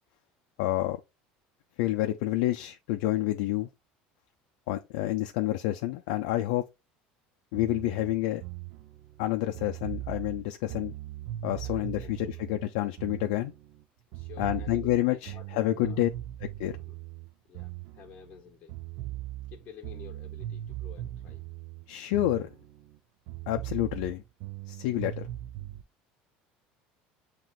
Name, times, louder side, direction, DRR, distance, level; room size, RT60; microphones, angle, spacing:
voice 1, 0.6-1.0 1.8-3.7 4.7-6.6 7.5-8.4 9.2-10.9 11.4-13.5 14.4-16.1 16.4-16.7 21.9-22.5 23.5-24.2 24.7-25.3, left 15 dB, 85° left, 0.4 m, -28 dB
sound 1, 7.5-13.8 14.1-18.4 18.7-23.0 23.3-25.8, right 14 dB, 65° right, 0.5 m, -40 dB
voice 2, 11.5-12.4 14.1-16.1 16.7-16.9 17.5-18.7 19.5-21.4, left 8 dB, 40° left, 0.8 m, -51 dB
7.4 x 2.9 x 2.3 m
supercardioid pair, 120°, 4 cm